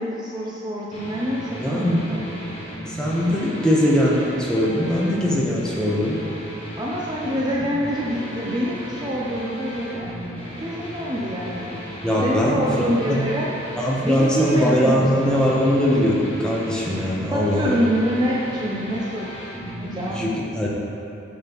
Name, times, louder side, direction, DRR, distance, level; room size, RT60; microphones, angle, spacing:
voice 1, 0.0-2.2 6.8-10.1 10.6-11.8 12.2-13.5 14.0-15.4 17.3-19.4 19.8-20.2, equal, 20° right, -5 dB, 0.5 m, -26 dB
sound 1, 0.9-20.1, equal, 30° left, 1.3 m, -35 dB
voice 2, 1.6-2.0 2.9-6.2 12.0-12.6 13.1-13.2 13.8-17.8 20.1-20.7, equal, 5° left, -5 dB, 0.9 m, -21 dB
8.6 x 5.7 x 3.0 m, 2.7 s
head